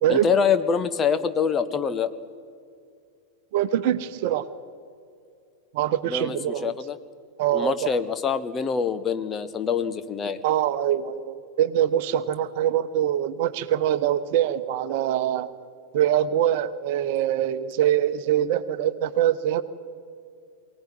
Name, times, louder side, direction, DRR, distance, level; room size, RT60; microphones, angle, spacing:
voice 1, 0.1-2.1 6.1-7.0 7.5-10.4, left 6 dB, 25° left, 11 dB, 1.1 m, -25 dB
voice 2, 3.5-4.5 5.7-6.7 7.4-7.9 10.4-15.5 15.9-19.6, right 11 dB, 50° right, 12 dB, 1.0 m, -24 dB
23.0 x 17.5 x 9.5 m, 2.4 s
figure-of-eight pair, 90°, 0 cm